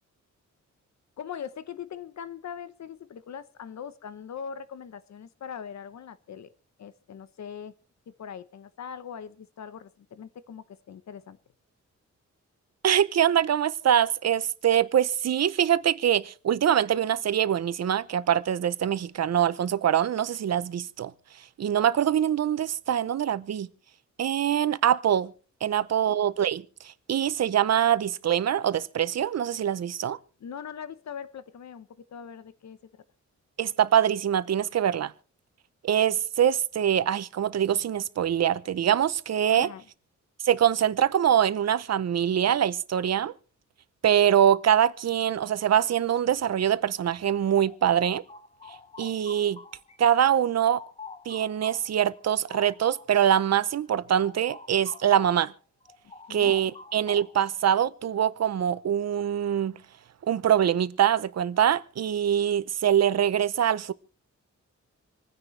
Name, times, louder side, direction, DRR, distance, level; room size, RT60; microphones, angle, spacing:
voice 1, 1.2-6.5 6.8-7.7 8.1-11.4 26.1-26.2 30.4-33.0 39.5-39.8 56.3-56.6, left 7 dB, 65° left, 0.9 m, -41 dB
voice 2, 12.8-21.1 21.4-23.7 24.2-25.3 25.6-30.2 33.6-35.1 35.8-39.7 40.4-43.3 44.0-48.2 49.0-49.6 50.0-50.8 51.3-55.5 56.3-59.7 60.3-63.9, right 9 dB, 60° right, 0.7 m, -24 dB
sound 1, 47.4-50.0 50.3-55.5 55.8-57.5, left 4 dB, 20° left, 0.8 m, -47 dB
27.5 x 9.8 x 3.2 m
wide cardioid pair, 160°, 29 cm